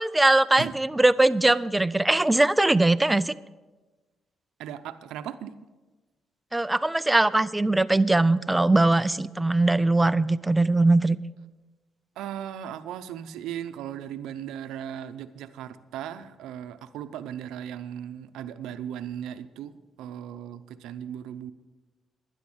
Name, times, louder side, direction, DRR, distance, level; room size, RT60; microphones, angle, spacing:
voice 1, 0.0-3.3 6.5-11.2, right 2 dB, 10° right, 15 dB, 0.4 m, -21 dB
voice 2, 4.6-5.6 12.2-21.5, right 10 dB, 90° right, 12 dB, 0.7 m, -37 dB
11.5 x 10.5 x 6.3 m, 1.2 s
cardioid pair, 90°, 0 cm